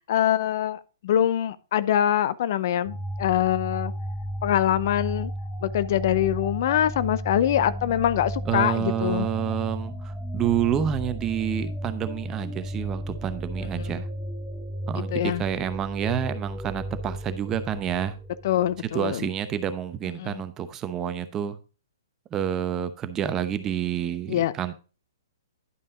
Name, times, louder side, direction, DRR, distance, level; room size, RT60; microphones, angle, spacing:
voice 1, 0.1-3.9 4.4-5.3 5.6-9.3 13.8-13.9 15.1-15.4 18.4-19.3 20.2-20.4 24.3-24.5, left 11 dB, 50° left, 0.6 m, -24 dB
sound 1, 2.9-19.2, equal, 5° left, 1.2 m, -34 dB
voice 2, 8.5-14.1 14.9-18.1 18.9-21.6 22.3-24.7, right 9 dB, 20° right, 0.8 m, -28 dB
11.0 x 5.4 x 3.8 m
hypercardioid pair, 125°, 2 cm